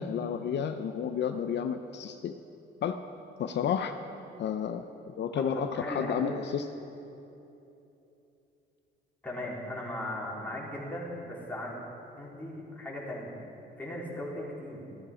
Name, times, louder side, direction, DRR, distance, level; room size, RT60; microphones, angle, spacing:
voice 1, 0.0-2.3 2.8-3.0 3.4-3.9 4.4-6.7, left 8 dB, 60° left, 8 dB, 0.6 m, -31 dB
voice 2, 5.4-6.4 9.2-11.7 12.2-13.3 13.8-14.8, left 1 dB, 10° left, -5 dB, 3.7 m, -37 dB
13.0 x 12.5 x 5.0 m, 2.9 s
cardioid pair, 90°, 20 cm